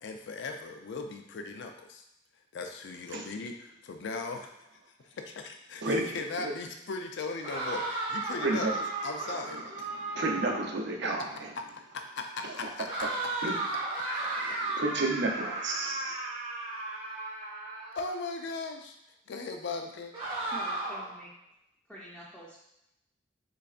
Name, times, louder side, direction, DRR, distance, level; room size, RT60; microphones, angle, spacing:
voice 1, 0.0-2.0 2.5-4.5 5.2-9.9 11.6-11.7 11.9-13.1 17.9-19.0 19.3-20.1, left 3 dB, 65° left, 5 dB, 0.4 m, -38 dB
voice 2, 5.8-6.1 6.4-6.5 8.4-8.7 9.3-9.4 9.9-11.5 12.4-12.7 13.0-13.1 13.4-13.6 14.4-16.1, right 2 dB, 60° right, 1 dB, 0.6 m, -32 dB
sound 1, 7.4-10.8 12.9-18.1 20.1-21.2, right 2 dB, 30° right, 0.9 m, -35 dB
voice 3, 20.5-21.3 21.9-22.6, equal, 5° left, -8 dB, 0.6 m, -46 dB
3.9 x 3.2 x 2.4 m, 0.81 s
head